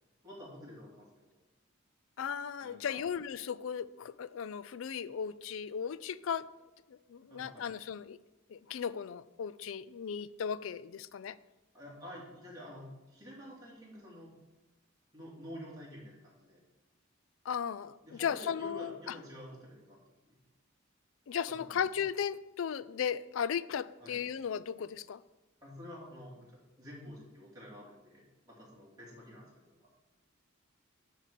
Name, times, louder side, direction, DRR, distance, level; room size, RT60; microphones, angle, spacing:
voice 1, 0.2-1.3 2.6-3.1 7.3-7.7 11.7-14.3 15.1-16.6 18.0-20.0 20.3-20.4 21.5-21.7 24.0-24.2 25.6-29.8, equal, 20° right, -6 dB, 2.8 m, -49 dB
voice 2, 2.2-6.5 6.9-8.2 8.5-11.4 17.4-19.2 21.3-25.2, left 7 dB, 70° left, 17 dB, 0.4 m, -36 dB
9.9 x 3.8 x 6.5 m, 1.1 s
head